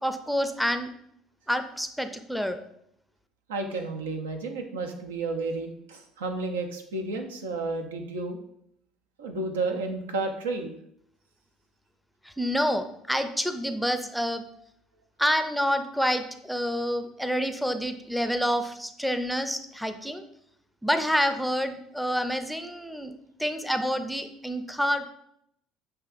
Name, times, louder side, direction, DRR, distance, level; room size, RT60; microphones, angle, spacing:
voice 1, 0.0-0.9 1.5-2.6 12.4-14.4 15.2-20.2 20.8-23.1 23.4-25.1, equal, ahead, 8 dB, 0.5 m, -28 dB
voice 2, 3.5-8.4 9.2-10.7, right 3 dB, 85° right, 4 dB, 0.6 m, -31 dB
7.6 x 2.8 x 2.5 m, 0.74 s
hypercardioid pair, 65°, 0 cm